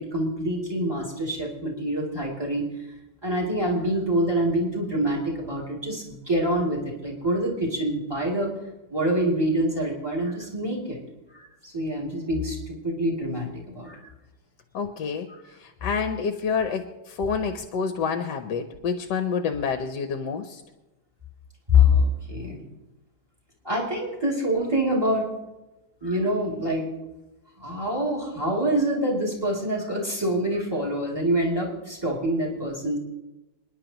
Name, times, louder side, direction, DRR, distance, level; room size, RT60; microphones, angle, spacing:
voice 1, 0.0-2.7 3.2-8.5 8.9-11.0 11.3-14.1 21.7-22.6 23.6-25.3 26.0-26.8 27.6-33.0, equal, 10° right, -2 dB, 2.8 m, -25 dB
voice 2, 14.7-15.3 15.6-20.6, left 6 dB, 65° left, 7 dB, 1.3 m, -28 dB
28.0 x 10.5 x 3.0 m, 1.0 s
omnidirectional pair, 2.3 m